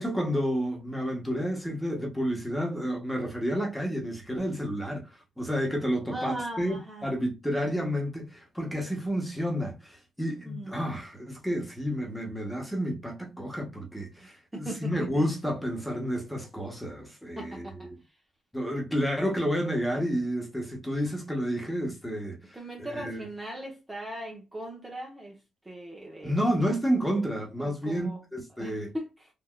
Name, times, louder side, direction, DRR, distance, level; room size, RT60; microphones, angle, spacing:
voice 1, 0.0-5.1 5.4-18.0 18.5-23.3 26.2-28.9, equal, 5° left, 1.1 m, -30 dB
voice 2, 6.1-7.1 10.4-10.8 14.2-15.2 17.4-17.9 22.5-26.7 27.6-28.2 28.6-29.1, right 1 dB, 15° right, 0.9 m, -39 dB
3.5 x 2.6 x 2.3 m
cardioid pair, 90°, 0 cm